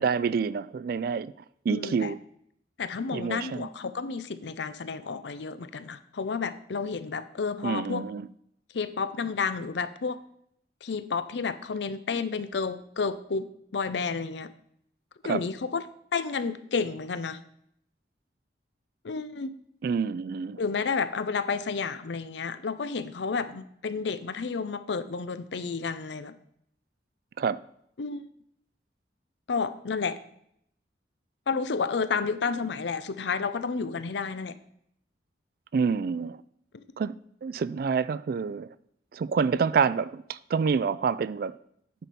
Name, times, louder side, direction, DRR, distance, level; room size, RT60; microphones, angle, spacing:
voice 1, 0.0-1.3 1.7-2.2 3.1-3.7 7.6-8.3 15.2-15.4 19.8-20.6 27.4-27.6 35.7-36.4 37.0-37.1 37.4-38.7 39.1-41.6, right 5 dB, 55° right, 0.3 m, -27 dB
voice 2, 1.7-2.1 2.8-8.0 8.7-10.2 10.8-13.5 13.7-14.5 15.2-15.9 16.1-17.4 19.0-19.5 20.6-26.3 28.0-28.3 29.5-30.2 31.5-34.6 36.7-36.8, left 5 dB, 75° left, 0.5 m, -31 dB
9.1 x 4.3 x 5.4 m
head